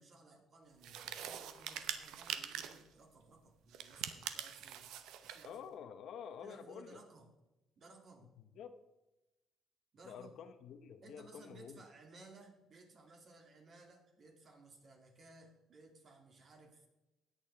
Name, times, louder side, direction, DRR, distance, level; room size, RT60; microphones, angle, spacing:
voice 1, 0.0-4.9 5.2-5.7 6.4-7.3 7.8-8.3 9.9-10.4 11.0-16.9, right 3 dB, 45° right, 2 dB, 2.6 m, -59 dB
sound 1, 0.8-2.9 3.7-5.5, right 10 dB, 85° right, 0.8 m, -44 dB
voice 2, 5.4-7.0 8.4-8.7 10.0-11.8, left 7 dB, 70° left, 9 dB, 0.9 m, -49 dB
19.0 x 7.0 x 3.5 m, 1.0 s
cardioid pair, 105°, 0 cm